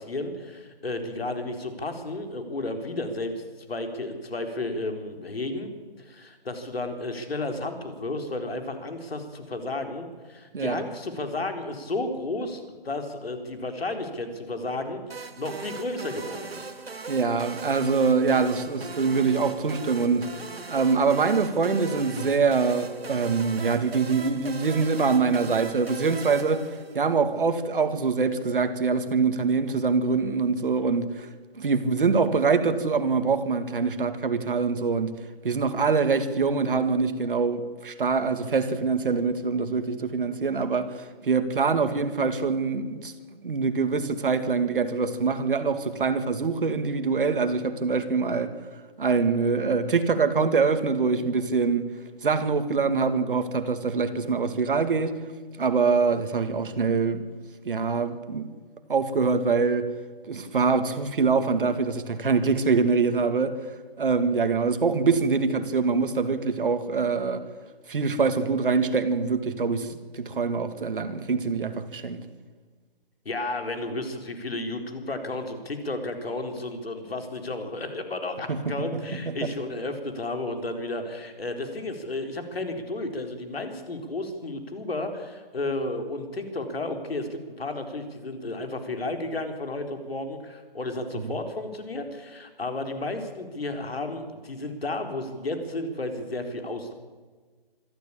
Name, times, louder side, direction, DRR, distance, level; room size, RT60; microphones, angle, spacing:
voice 1, 0.0-5.7 6.0-16.7 73.3-96.9, left 2 dB, 75° left, 4.1 m, -33 dB
voice 2, 10.5-10.9 17.1-20.3 20.7-26.7 26.9-31.3 31.6-35.2 35.4-43.1 43.4-48.5 49.0-51.8 52.2-55.2 55.6-57.2 57.6-58.5 58.9-59.9 60.2-63.6 64.0-67.4 67.9-72.2 78.5-78.9 79.1-79.3 91.2-91.3, right 4 dB, 60° right, 2.2 m, -24 dB
sound 1, 15.1-27.3, right 4 dB, 80° right, 2.3 m, -39 dB
25.5 x 13.0 x 8.7 m
figure-of-eight pair, 155°, 30 cm